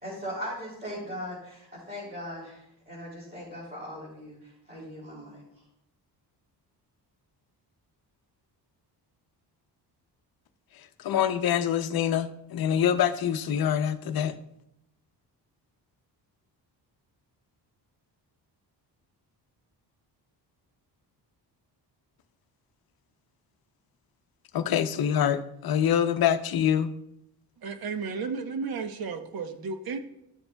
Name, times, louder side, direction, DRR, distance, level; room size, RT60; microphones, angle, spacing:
voice 1, 0.0-5.4, equal, 20° right, -7 dB, 3.1 m, -39 dB
voice 2, 10.7-14.4 24.5-26.9, left 9 dB, 60° left, 10 dB, 0.6 m, -25 dB
voice 3, 27.6-30.0, right 5 dB, 60° right, 8 dB, 0.9 m, -33 dB
13.0 x 7.0 x 2.2 m, 0.81 s
cardioid pair, 130°, 41 cm